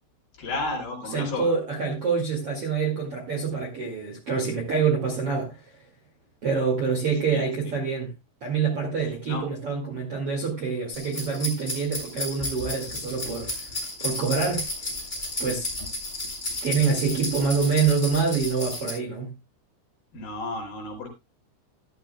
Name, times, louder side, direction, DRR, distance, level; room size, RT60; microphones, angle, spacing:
voice 1, 0.4-1.5 7.3-7.8 9.0-9.5 20.1-21.1, left 3 dB, 55° left, 4.0 m, -33 dB
voice 2, 1.1-5.6 6.4-8.1 8.4-13.7 14.0-14.6 15.4-15.7 16.6-19.3, right 5 dB, 40° right, 2.2 m, -26 dB
sound 1, 10.9-18.9, left 1 dB, 10° left, 5.8 m, -33 dB
14.0 x 12.0 x 2.3 m
omnidirectional pair, 5.6 m